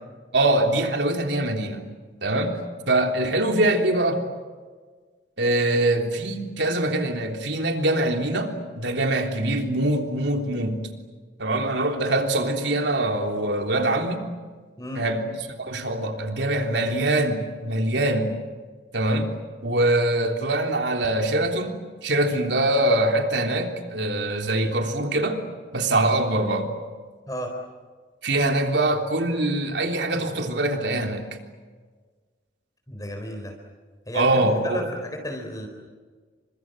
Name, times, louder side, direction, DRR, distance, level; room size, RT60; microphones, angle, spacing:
voice 1, 0.3-1.9 2.2-2.5 2.9-4.2 5.4-10.9 11.4-14.3 14.9-15.2 15.6-18.3 18.9-19.3 19.6-25.4 25.7-26.7 28.2-31.3 34.1-34.9, right 1 dB, 85° right, 3 dB, 3.4 m, -23 dB
voice 2, 32.9-33.5 34.1-35.7, equal, 20° left, 2 dB, 4.0 m, -33 dB
29.5 x 25.5 x 7.8 m, 1.5 s
head